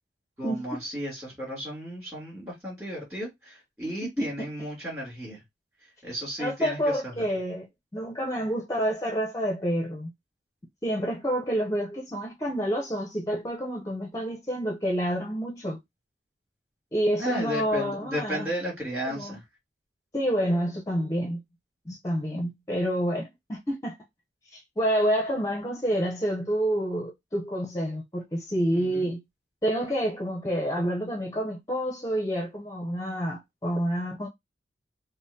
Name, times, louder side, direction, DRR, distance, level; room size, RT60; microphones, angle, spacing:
voice 1, 0.4-5.4 6.0-7.3 17.2-19.4 28.8-29.1, equal, 15° right, 2.9 m, -34 dB
voice 2, 4.2-4.5 6.4-7.7 7.9-10.1 10.8-15.8 16.9-18.5 19.1-19.4 20.1-21.4 21.8-23.9 24.5-29.2 29.6-34.3, equal, 15° left, 0.7 m, -28 dB
5.2 x 2.1 x 2.7 m
head